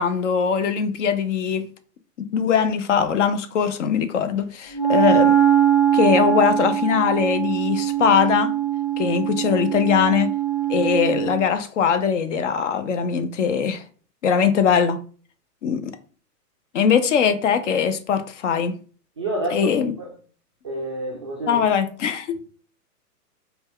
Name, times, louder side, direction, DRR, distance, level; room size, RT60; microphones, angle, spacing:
voice 1, 0.0-1.7 2.2-5.4 5.9-8.5 9.0-10.3 10.7-13.8 14.2-15.0 15.6-16.0 16.7-18.8 19.5-19.9 21.5-22.4, left 7 dB, 50° left, 0.6 m, -21 dB
Wind instrument woodwind instrument, 4.7-11.4, right 9 dB, 25° left, 2.0 m, -21 dB
voice 2, 19.2-20.1 20.6-21.7, right 2 dB, 20° right, 0.3 m, -29 dB
4.2 x 2.3 x 3.6 m
figure-of-eight pair, 110°, 49 cm